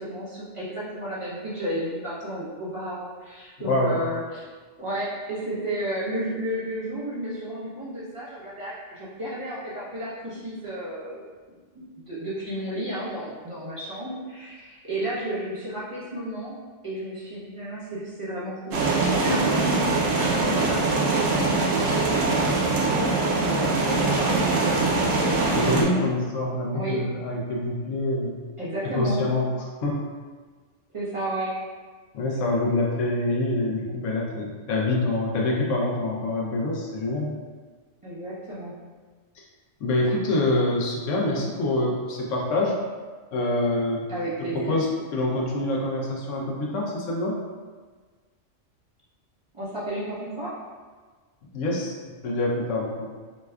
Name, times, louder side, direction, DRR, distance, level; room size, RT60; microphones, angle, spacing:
voice 1, 0.0-4.5 4.8-11.2 11.7-16.6 16.8-22.3 22.9-26.2 26.7-27.0 28.6-29.2 30.9-31.5 38.0-38.8 44.1-44.8 49.5-50.6, right 1 dB, 30° right, -10 dB, 0.8 m, -32 dB
voice 2, 3.6-4.0 25.5-28.4 28.9-29.5 29.8-30.0 32.1-37.4 39.8-42.7 43.3-44.1 44.5-47.4 51.5-52.0 52.2-53.1, left 2 dB, 80° left, -2 dB, 1.0 m, -25 dB
sound 1, 18.7-25.8, right 3 dB, 90° right, 1.0 m, -23 dB
5.1 x 2.2 x 2.3 m, 1.5 s
omnidirectional pair, 1.3 m